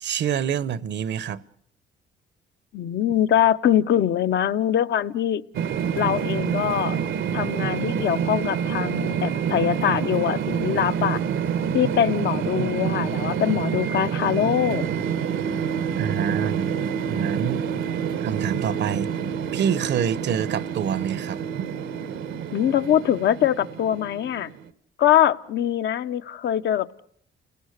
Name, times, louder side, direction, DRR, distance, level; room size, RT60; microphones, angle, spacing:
voice 1, 0.0-1.4 16.0-16.7 17.1-17.6 18.2-19.1 19.5-21.4, right 8 dB, 65° right, 0.9 m, -26 dB
voice 2, 2.7-5.4 5.9-7.0 7.3-11.2 11.7-14.9 22.5-24.5 25.0-27.0, left 10 dB, 65° left, 0.9 m, -23 dB
sound 1, 5.5-24.7, right 7 dB, 80° right, 1.2 m, -27 dB
30.0 x 18.5 x 6.6 m
cardioid pair, 90°, 20 cm